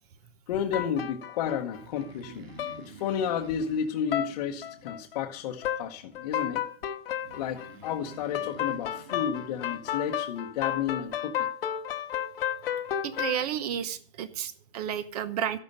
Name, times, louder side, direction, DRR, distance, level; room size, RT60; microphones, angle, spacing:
voice 1, 0.5-2.5 2.8-6.6 7.4-11.4, left 8 dB, 40° left, 1 dB, 1.1 m, -32 dB
sound 1, 0.7-2.3 2.6-2.8 3.1-3.6 4.1-4.3 4.6-5.2 5.6-5.8 6.1-13.4, left 10 dB, 60° left, 1.4 m, -32 dB
Breathing, 1.7-5.4 7.2-10.3, right 3 dB, 65° right, 2.9 m, -50 dB
voice 2, 13.0-15.6, right 9 dB, 35° right, 13 dB, 0.9 m, -31 dB
13.5 x 11.0 x 5.4 m, 0.43 s
hypercardioid pair, 160°, 32 cm